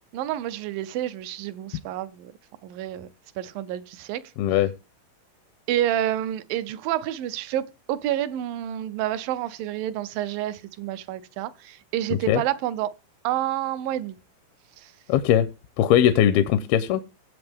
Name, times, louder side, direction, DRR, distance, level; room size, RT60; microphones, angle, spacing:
voice 1, 0.1-2.3 2.6-3.1 3.4-4.2 5.7-12.9 13.2-14.2 14.8-14.9, right 12 dB, 75° right, 2.3 m, -29 dB
voice 2, 4.4-4.7 12.3-12.4 15.1-15.5 15.8-17.0, left 10 dB, 85° left, 2.6 m, -20 dB
19.0 x 7.8 x 3.5 m
omnidirectional pair, 4.3 m